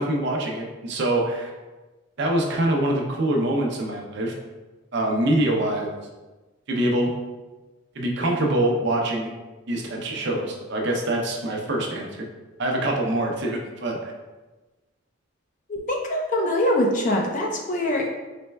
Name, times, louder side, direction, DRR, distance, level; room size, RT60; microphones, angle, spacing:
voice 1, 0.0-1.5 2.2-4.3 4.9-5.9 6.7-7.2 7.9-9.3 9.7-12.3 12.6-14.1, right 1 dB, 50° right, 0 dB, 0.5 m, -24 dB
voice 2, 15.7-18.1, left 1 dB, 35° left, 1 dB, 0.5 m, -23 dB
4.1 x 3.1 x 2.2 m, 1.2 s
head